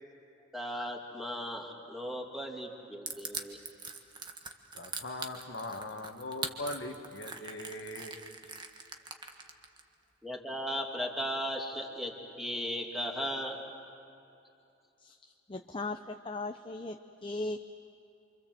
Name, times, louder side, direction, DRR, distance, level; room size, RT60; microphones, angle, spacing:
voice 1, 0.5-3.6 10.2-13.6, equal, ahead, 0 dB, 2.7 m, -36 dB
Crushing, 3.1-9.8, right 5 dB, 25° right, 1.5 m, -41 dB
voice 2, 4.7-8.2, left 2 dB, 90° left, 4 dB, 2.0 m, -40 dB
voice 3, 15.0-17.6, left 2 dB, 30° left, 6 dB, 0.7 m, -38 dB
28.5 x 25.5 x 7.7 m, 2.7 s
head